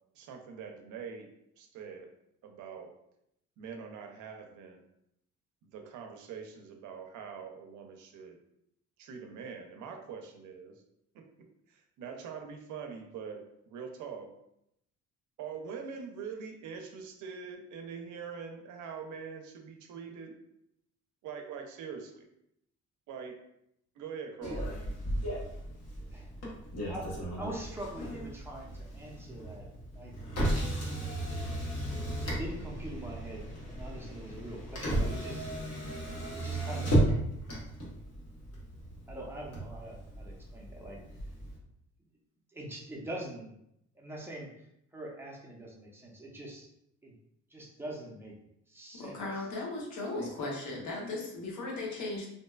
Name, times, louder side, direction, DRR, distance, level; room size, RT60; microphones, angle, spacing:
voice 1, 0.1-1.3 1.6-2.1 2.4-2.9 3.6-4.8 5.6-8.3 9.0-10.7 11.7-13.4 13.7-14.3 15.4-20.3 21.2-22.3 23.1-23.3 24.0-24.7, right 6 dB, 80° right, 4 dB, 0.5 m, -43 dB
Motor vehicle (road), 24.4-41.6, right 1 dB, 55° left, 1.1 m, -35 dB
voice 2, 26.0-26.3 26.9-29.7 29.9-30.1 31.3-31.5 32.0-35.5 36.3-37.0 39.1-41.0 42.5-43.5 43.9-44.7 44.9-46.7 47.0-47.1 47.5-48.4 48.7-49.4 50.1-50.3, right 1 dB, 10° right, -3 dB, 0.6 m, -44 dB
voice 3, 48.9-52.3, left 2 dB, 75° left, -1 dB, 0.8 m, -37 dB
2.6 x 2.2 x 2.2 m, 0.78 s
cardioid pair, 90°, 30 cm